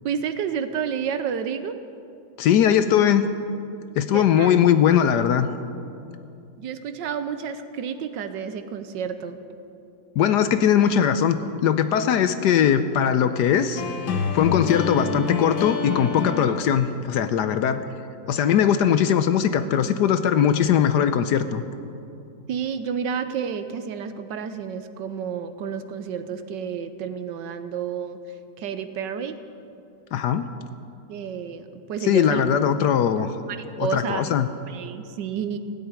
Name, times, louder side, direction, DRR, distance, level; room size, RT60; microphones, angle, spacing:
voice 1, 0.0-1.8 4.0-4.6 6.6-9.4 22.5-28.2 28.6-29.3 31.1-32.4 33.5-34.3 34.7-35.6, right 7 dB, 70° right, 10 dB, 1.3 m, -30 dB
voice 2, 2.4-3.2 4.0-5.5 10.2-13.8 14.3-17.8 18.3-21.6 30.1-30.5 32.0-33.3 33.8-34.5, left 9 dB, 70° left, 10 dB, 1.1 m, -20 dB
sound 1, 13.7-17.0, left 5 dB, 90° left, 1.8 m, -27 dB
16.5 x 8.0 x 9.6 m, 2.6 s
omnidirectional pair, 2.1 m